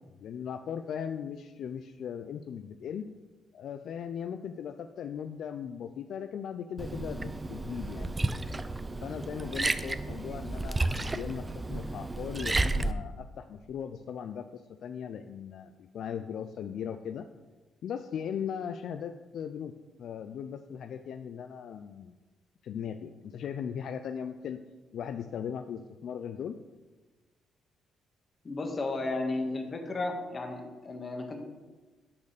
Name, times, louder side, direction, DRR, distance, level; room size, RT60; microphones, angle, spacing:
voice 1, 0.2-3.1 3.5-8.2 9.0-10.8 11.1-17.3 17.8-19.7 20.0-22.1 22.6-24.6 24.9-26.6, left 8 dB, 70° left, 8 dB, 0.3 m, -38 dB
Liquid, 6.8-12.9, right 2 dB, 20° right, 0.4 m, -32 dB
voice 2, 28.4-31.4, left 2 dB, 35° left, 3 dB, 1.5 m, -33 dB
8.6 x 4.0 x 6.6 m, 1.2 s
cardioid pair, 90°, 0 cm